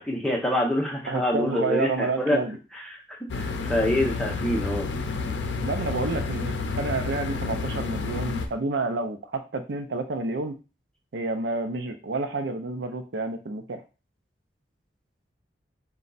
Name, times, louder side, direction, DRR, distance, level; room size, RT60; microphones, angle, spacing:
voice 1, 0.0-2.4 2.9-3.0 3.3-4.9, left 1 dB, 5° left, -2 dB, 0.8 m, -26 dB
voice 2, 1.1-2.6 5.6-10.6 11.1-13.8, right 3 dB, 75° right, 7 dB, 0.5 m, -29 dB
sound 1, 3.3-8.5, left 4 dB, 80° left, 0.5 m, -30 dB
4.2 x 2.3 x 3.9 m, 0.32 s
head